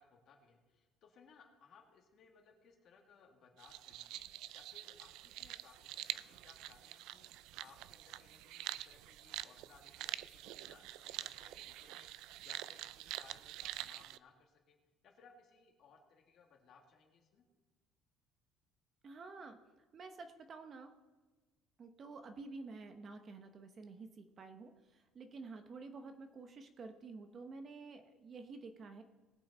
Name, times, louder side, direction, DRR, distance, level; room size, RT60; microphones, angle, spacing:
voice 1, 0.0-4.2 4.5-14.8 15.0-17.4, left 5 dB, 45° left, 2 dB, 2.0 m, -64 dB
sound 1, 3.6-14.2, right 15 dB, 70° right, 0.4 m, -46 dB
voice 2, 19.0-19.6 19.9-20.9 21.8-29.0, right 3 dB, 30° right, 7 dB, 0.8 m, -50 dB
19.5 x 7.7 x 4.2 m, 1.3 s
cardioid pair, 160°, 0 cm